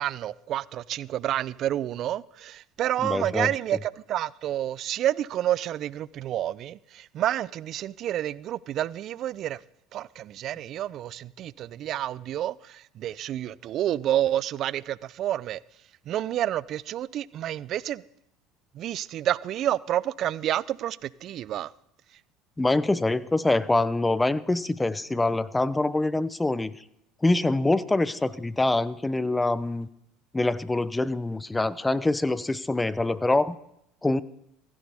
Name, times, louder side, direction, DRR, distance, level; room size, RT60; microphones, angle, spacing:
voice 1, 0.0-9.6 9.9-15.6 16.1-18.0 18.8-21.7, right 12 dB, 50° right, 0.4 m, -29 dB
voice 2, 3.0-3.5 22.6-26.7 27.2-29.9 30.3-33.6 34.0-34.2, left 2 dB, 10° left, 0.7 m, -25 dB
16.0 x 14.5 x 3.5 m
hypercardioid pair, 85°, 0 cm